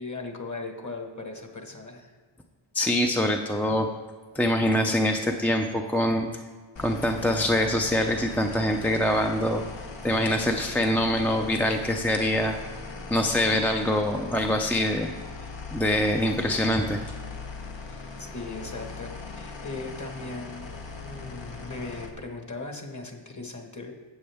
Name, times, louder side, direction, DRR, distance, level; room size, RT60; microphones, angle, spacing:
voice 1, 0.0-2.1 17.9-20.7 21.0-23.9, left 3 dB, 35° left, 3 dB, 1.5 m, -38 dB
voice 2, 2.7-3.9 4.3-6.3 6.8-9.6 10.0-12.6 13.1-15.1 15.7-17.0, left 1 dB, 5° left, 3 dB, 0.5 m, -24 dB
sound 1, 6.8-22.1, left 4 dB, 60° left, 1.2 m, -40 dB
12.0 x 7.8 x 3.5 m, 1.5 s
wide cardioid pair, 75°, 50 cm